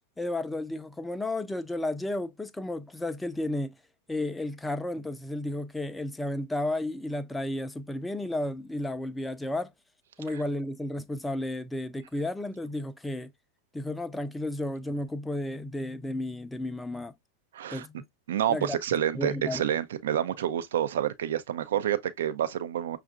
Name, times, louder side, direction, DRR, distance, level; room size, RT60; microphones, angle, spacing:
voice 1, 0.2-3.7 4.1-9.7 10.2-13.3 13.7-17.1 17.7-17.9 18.5-18.8 19.1-19.6, left 1 dB, 5° left, 0.4 m, -32 dB
voice 2, 17.5-17.9 18.3-23.0, right 10 dB, 65° right, 0.5 m, -28 dB
6.2 x 2.4 x 2.3 m
figure-of-eight pair, 90°, 0 cm